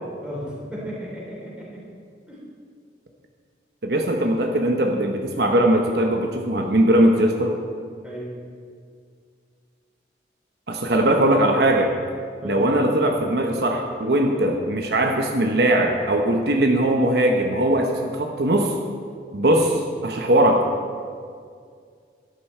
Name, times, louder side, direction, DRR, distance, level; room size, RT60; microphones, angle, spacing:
voice 1, 0.7-1.7 2.3-2.4 8.0-8.3 12.4-12.7, equal, 5° right, -6 dB, 3.4 m, -34 dB
voice 2, 3.8-7.5 10.7-11.9 12.4-18.7 19.3-20.7, right 1 dB, 70° right, 2 dB, 0.9 m, -20 dB
12.5 x 10.5 x 4.4 m, 2.2 s
head